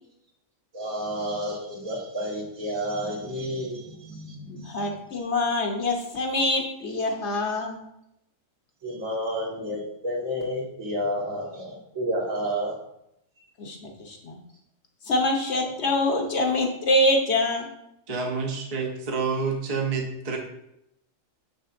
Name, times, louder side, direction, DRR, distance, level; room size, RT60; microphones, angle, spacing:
voice 1, 0.7-4.8 8.8-12.7, equal, 70° right, -4 dB, 2.1 m, -30 dB
voice 2, 4.5-7.8 13.6-14.4 15.0-17.7, left 1 dB, 55° left, 2 dB, 1.1 m, -25 dB
voice 3, 18.1-20.4, right 4 dB, 35° right, 1 dB, 0.7 m, -28 dB
6.7 x 6.4 x 2.6 m, 0.79 s
omnidirectional pair, 1.4 m